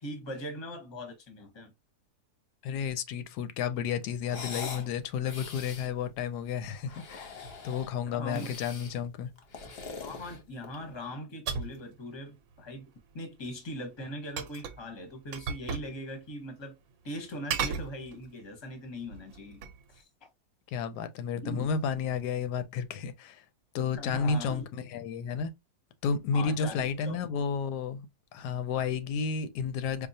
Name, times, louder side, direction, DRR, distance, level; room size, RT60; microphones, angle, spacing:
voice 1, 0.0-1.7 8.1-8.6 10.0-12.9 13.1-16.7 17.0-19.6 19.9-20.0 21.4-21.7 23.9-24.7 26.3-27.2, equal, 20° left, 0.8 m, -40 dB
voice 2, 2.6-9.3 20.7-23.4 23.7-25.5 26.0-28.1 28.3-30.1, left 6 dB, 85° left, 1.1 m, -32 dB
sound 1, 4.2-4.9 5.2-5.9 6.8-7.9 8.3-9.0 9.4-10.9, left 5 dB, 50° left, 0.8 m, -42 dB
sound 2, 11.5-11.8 14.4-14.9 15.3-15.9 16.2-16.3 17.5-18.4 19.0-19.8, right 6 dB, 70° right, 0.9 m, -35 dB
4.6 x 2.3 x 2.7 m
omnidirectional pair, 1.7 m